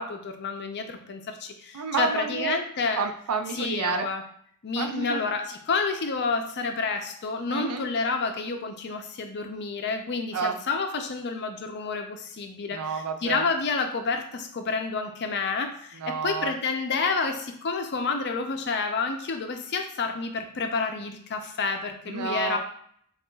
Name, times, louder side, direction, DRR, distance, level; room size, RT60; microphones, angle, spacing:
voice 1, 0.0-3.0 3.5-4.2 4.6-12.8 13.2-22.6, left 4 dB, 50° left, 5 dB, 0.5 m, -29 dB
voice 2, 1.7-2.6 3.0-4.1 4.8-5.2 7.5-7.9 10.3-10.6 12.7-13.4 15.9-16.5 22.1-22.6, right 5 dB, 80° right, 6 dB, 0.5 m, -30 dB
6.6 x 2.4 x 2.3 m, 0.65 s
head